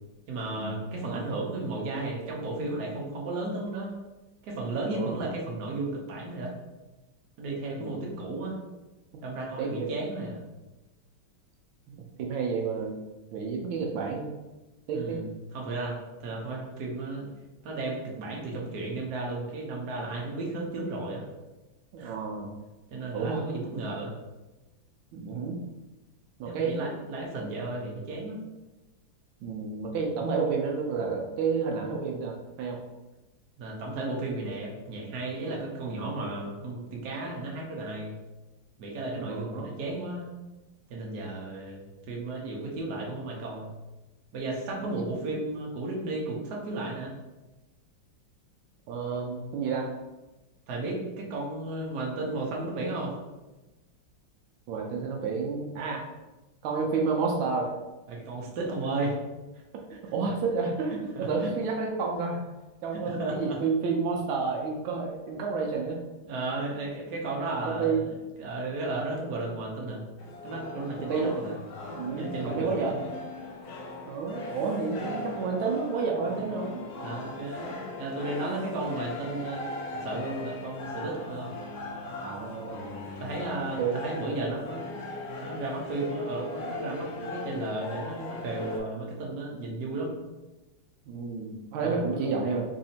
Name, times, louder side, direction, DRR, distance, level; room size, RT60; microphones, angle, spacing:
voice 1, 0.3-3.9 4.4-6.6 7.4-8.6 9.2-10.4 14.9-15.3 15.5-17.3 17.6-21.2 22.0-22.2 22.9-24.1 26.4-28.4 33.6-38.2 38.8-40.3 40.9-43.7 44.3-47.1 50.7-53.2 58.1-59.2 61.1-61.5 62.9-63.6 66.3-70.0 70.4-71.5 72.2-73.1 77.0-81.6 83.2-84.8 85.4-90.1 91.8-92.5, right 2 dB, 60° right, -2 dB, 1.3 m, -34 dB
voice 2, 4.8-5.2 7.7-8.1 9.6-9.9 11.9-13.0 13.3-14.3 14.9-15.2 21.9-22.5 23.1-23.4 25.1-25.6 26.4-26.7 29.4-32.8 39.2-39.7 48.9-49.9 54.7-56.0 56.6-57.7 59.7-62.4 62.8-66.0 67.6-68.1 71.0-71.3 71.9-72.9 74.1-76.8 82.2-83.0 83.8-83.9 89.5-89.6 91.1-92.6, right 5 dB, 85° right, 0 dB, 1.4 m, -30 dB
sound 1, 70.2-88.8, left 2 dB, 70° left, 0.9 m, -39 dB
4.1 x 2.7 x 2.7 m, 1.1 s
omnidirectional pair, 2.2 m